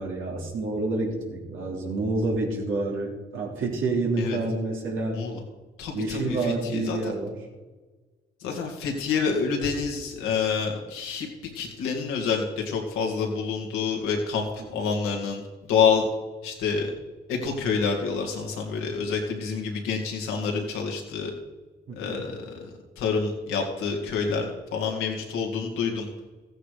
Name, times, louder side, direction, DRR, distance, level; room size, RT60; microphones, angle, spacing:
voice 1, 0.0-5.2 5.9-7.3 21.9-22.2, right 2 dB, 75° right, -1 dB, 3.3 m, -28 dB
voice 2, 5.8-7.1 8.4-11.3 11.5-15.4 15.7-16.1 16.4-16.9 17.3-21.3 22.0-26.1, left 5 dB, 90° left, 1 dB, 2.3 m, -27 dB
14.5 x 9.0 x 5.1 m, 1.3 s
supercardioid pair, 55°, 21 cm